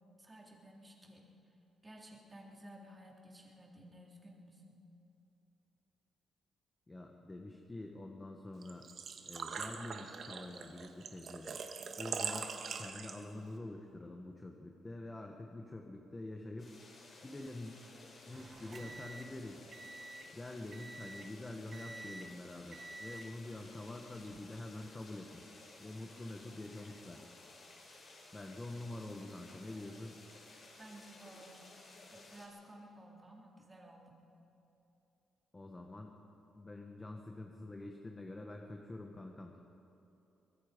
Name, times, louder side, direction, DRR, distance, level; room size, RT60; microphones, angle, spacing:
voice 1, 0.2-1.3 1.8-4.9 30.8-31.7 32.1-34.2, right 1 dB, 20° right, -1 dB, 3.5 m, -55 dB
voice 2, 6.9-8.9 9.3-11.6 12.0-16.8 17.2-17.8 18.3-19.7 20.3-27.2 28.3-30.2 35.5-36.1 36.5-39.6, left 2 dB, 20° left, 2 dB, 1.4 m, -46 dB
Engine / Trickle dribble / Fill (with liquid), 8.6-13.5, right 5 dB, 55° right, 1.6 m, -42 dB
sound 1, 16.6-32.5, left 2 dB, 45° left, 5.7 m, -57 dB
sound 2, 18.3-20.4 20.7-21.4 21.7-22.4 22.7-23.3 24.1-24.4, right 2 dB, 35° right, 1.6 m, -50 dB
24.0 x 20.5 x 5.3 m, 2.9 s
cardioid pair, 105°, 0 cm